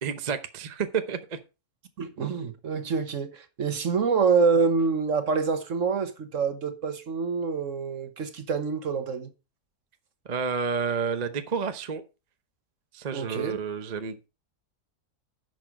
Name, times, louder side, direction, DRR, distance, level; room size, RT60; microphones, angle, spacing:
voice 1, 0.0-1.4 10.2-12.0 12.9-14.2, right 6 dB, 35° right, 0.7 m, -30 dB
voice 2, 2.0-9.3 13.1-13.6, right 5 dB, 55° right, 1.5 m, -26 dB
10.5 x 6.3 x 4.7 m
omnidirectional pair, 1.7 m